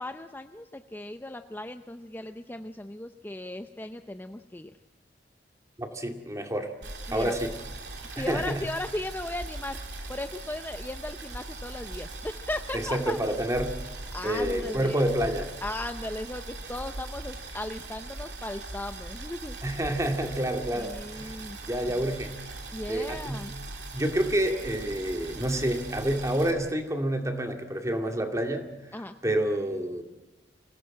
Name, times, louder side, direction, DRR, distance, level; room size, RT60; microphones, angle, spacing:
voice 1, 0.0-4.7 7.1-7.3 8.0-9.8 10.1-13.2 14.1-15.0 15.6-19.6 20.7-21.6 22.7-23.6 28.9-29.2, left 1 dB, 10° left, 7 dB, 0.7 m, -37 dB
voice 2, 5.8-6.7 7.1-7.5 8.2-8.6 12.7-13.8 14.2-15.5 19.6-21.4 21.7-22.4 22.9-23.5 23.9-28.9 29.2-30.0, right 1 dB, 20° right, 5 dB, 2.3 m, -28 dB
Boiling, 6.8-26.5, right 2 dB, 75° right, 3.3 m, -40 dB
25.5 x 17.5 x 7.7 m, 1.1 s
head